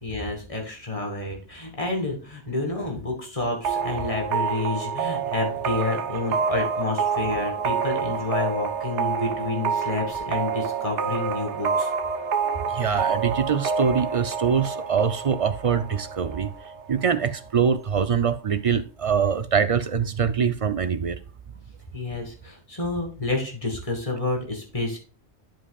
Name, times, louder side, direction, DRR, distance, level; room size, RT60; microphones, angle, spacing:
voice 1, 0.0-11.9 21.9-25.0, left 3 dB, 30° left, 2.2 m, -29 dB
sound 1, 3.6-17.2, right 6 dB, 80° right, 1.2 m, -28 dB
voice 2, 12.4-16.5 16.9-21.2, right 6 dB, 55° right, 0.3 m, -24 dB
11.5 x 5.0 x 2.3 m
omnidirectional pair, 1.2 m